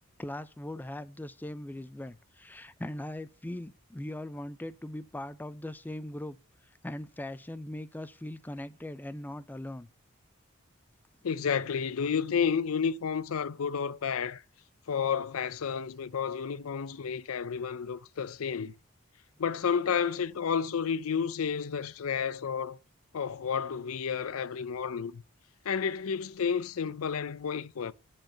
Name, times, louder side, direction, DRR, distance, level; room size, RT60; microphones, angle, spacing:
voice 1, 0.2-6.4 6.6-9.9, left 1 dB, 10° left, 0.4 m, -40 dB
voice 2, 11.2-14.4 14.9-18.7 19.4-22.8 23.1-25.2 25.6-27.9, left 6 dB, 75° left, 0.5 m, -31 dB
10.5 x 4.5 x 7.7 m
head